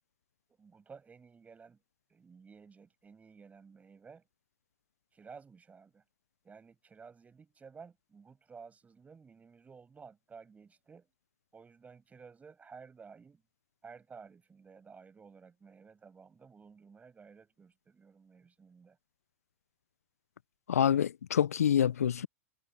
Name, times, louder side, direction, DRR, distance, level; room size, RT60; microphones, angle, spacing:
voice 1, 0.5-1.8 2.1-4.3 5.1-6.0 6.4-11.1 11.5-13.4 13.8-19.0, right 5 dB, 20° right, 7.1 m, -54 dB
voice 2, 20.7-22.3, left 9 dB, 85° left, 0.4 m, -26 dB
hypercardioid pair, 100°, 8 cm